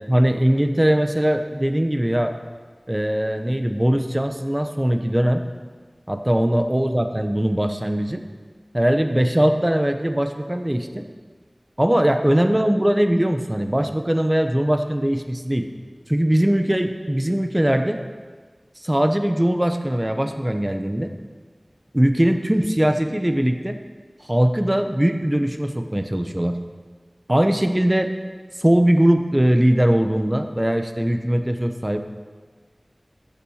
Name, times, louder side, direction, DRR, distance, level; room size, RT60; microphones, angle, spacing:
voice 1, 0.1-2.3 2.9-5.4 6.1-8.2 8.7-11.0 11.8-15.6 16.1-18.0 18.8-21.1 21.9-23.8 24.3-26.5 27.3-28.1 28.6-32.0, right 1 dB, 20° right, 6 dB, 0.9 m, -20 dB
13.5 x 7.2 x 6.5 m, 1.5 s
wide cardioid pair, 45°, 0 cm